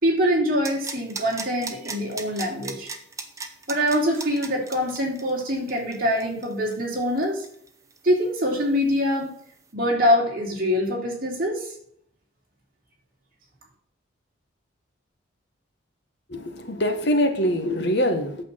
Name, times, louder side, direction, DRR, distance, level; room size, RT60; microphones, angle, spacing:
voice 1, 0.0-2.9 3.7-7.4 8.0-9.3 9.7-11.7, equal, 45° right, -2 dB, 3.3 m, -24 dB
sound 1, 0.6-8.2 8.4-8.5, right 4 dB, 15° right, 0.9 m, -36 dB
voice 2, 16.3-18.4, equal, 55° left, 6 dB, 1.4 m, -23 dB
8.8 x 7.1 x 5.7 m, 0.65 s
head